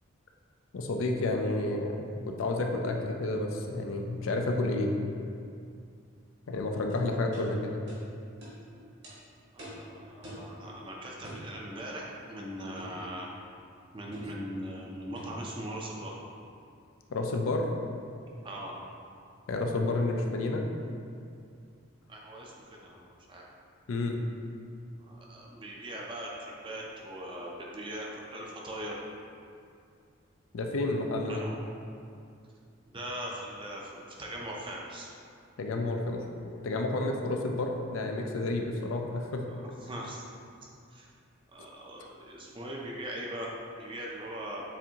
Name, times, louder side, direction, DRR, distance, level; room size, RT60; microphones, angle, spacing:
voice 1, 0.7-5.1 6.5-7.8 17.1-17.7 19.5-20.6 23.9-24.2 30.5-31.4 35.6-36.2 36.6-39.5, left 2 dB, 70° left, 2 dB, 0.4 m, -30 dB
sound 1, 6.9-7.0 7.3-7.5 7.9-8.0 8.4-8.6 9.0-9.2 9.6-9.8 10.2-10.5 11.2-11.5 12.8-13.0 14.1-14.4 15.1-15.4, equal, 55° right, 1.4 m, -45 dB
voice 2, 9.5-13.3 13.9-16.1 18.4-18.7 22.1-22.5 22.8-23.4 25.1-29.0 31.3-31.6 32.9-33.9 34.2-35.1 39.8-40.2 40.9-41.1 41.5-44.6, right 1 dB, 25° right, -3 dB, 0.5 m, -40 dB
7.0 x 2.6 x 2.8 m, 2.4 s
head